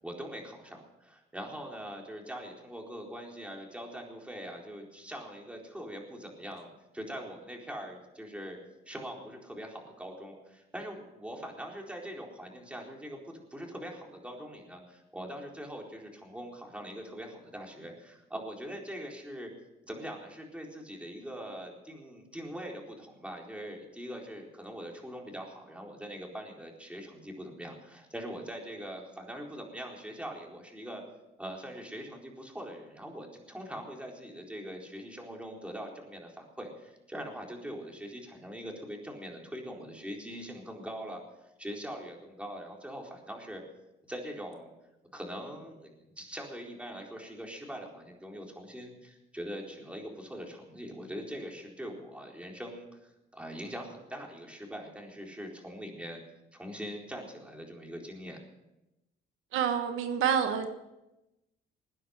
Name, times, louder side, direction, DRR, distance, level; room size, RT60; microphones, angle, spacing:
voice 1, 0.0-8.6 8.9-19.5 19.9-31.0 31.4-41.2 41.6-43.6 44.1-44.7 45.1-45.9 46.2-56.2 56.5-58.4, equal, 5° right, 0 dB, 4.2 m, -42 dB
voice 2, 59.5-60.7, right 8 dB, 90° right, 7 dB, 1.4 m, -28 dB
20.0 x 10.0 x 6.5 m, 0.94 s
cardioid pair, 90°, 20 cm